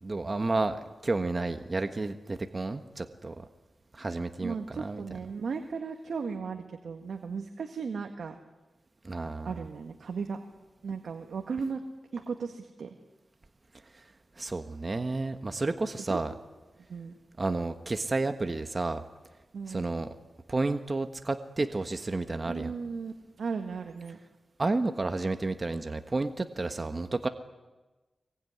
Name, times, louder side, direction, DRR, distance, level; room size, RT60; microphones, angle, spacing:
voice 1, 0.0-3.4 3.9-5.0 9.0-9.5 13.9-14.0 14.4-16.3 17.4-19.0 19.7-20.1 20.5-22.7 24.6-27.3, right 3 dB, 40° right, 8 dB, 1.5 m, -31 dB
voice 2, 4.4-8.4 9.4-10.4 10.8-11.8 12.1-12.9 16.1-16.2 16.8-17.2 19.5-19.9 22.5-24.2, right 5 dB, 85° right, 5 dB, 1.8 m, -36 dB
24.5 x 22.0 x 9.6 m, 1.2 s
cardioid pair, 70°, 0 cm